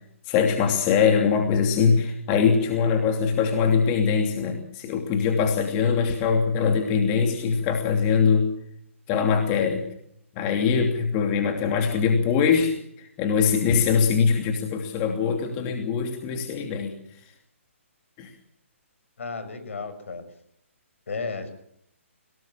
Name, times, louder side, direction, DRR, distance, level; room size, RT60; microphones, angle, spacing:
voice 1, 0.3-8.5 9.1-9.8 10.3-17.0 18.2-18.3, left 6 dB, 25° left, 4 dB, 2.9 m, -22 dB
voice 2, 19.2-20.2 21.1-21.5, left 4 dB, 70° left, 11 dB, 6.4 m, -33 dB
25.5 x 19.0 x 7.4 m, 0.72 s
hypercardioid pair, 150°, 7 cm